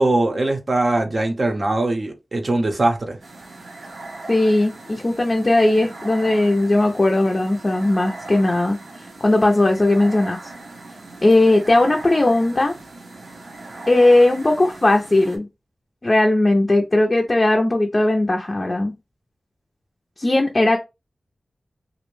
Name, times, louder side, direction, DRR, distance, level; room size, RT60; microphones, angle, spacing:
voice 1, 0.0-3.2, right 2 dB, 50° right, 0.6 m, -21 dB
sound 1, 3.2-15.4, right 2 dB, 85° right, 0.7 m, -39 dB
voice 2, 4.3-8.8 9.2-10.4 11.2-12.7 13.9-15.5 16.0-18.9 20.2-20.8, left 2 dB, 35° left, 0.4 m, -17 dB
2.5 x 2.1 x 3.0 m
wide cardioid pair, 80°, 0 cm